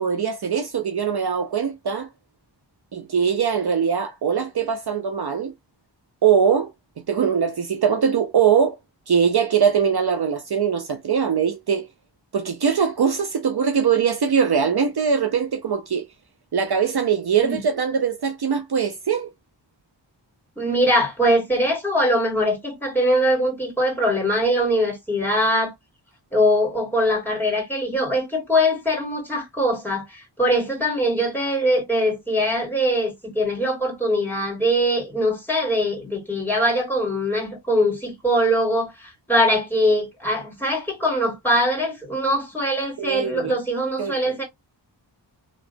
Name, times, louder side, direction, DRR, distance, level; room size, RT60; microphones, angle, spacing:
voice 1, 0.0-2.1 2.9-5.5 6.2-6.7 7.1-8.8 9.1-11.9 12.3-16.1 16.5-19.3 43.0-43.5 44.0-44.3, right 7 dB, 60° right, 0.6 m, -21 dB
voice 2, 20.6-25.7 26.3-44.4, equal, 5° left, 2.4 m, -22 dB
3.2 x 2.9 x 2.5 m
wide cardioid pair, 60°, 44 cm